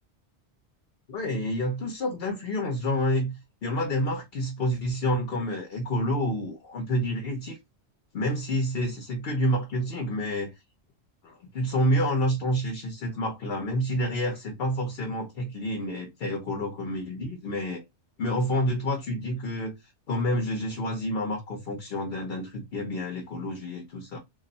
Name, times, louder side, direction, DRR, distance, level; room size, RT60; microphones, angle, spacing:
voice 1, 1.1-3.3 3.6-7.6 8.1-10.5 11.2-17.8 18.2-19.8 20.1-24.2, equal, 60° left, 1.0 m, -28 dB
2.6 x 2.5 x 4.0 m
omnidirectional pair, 1.2 m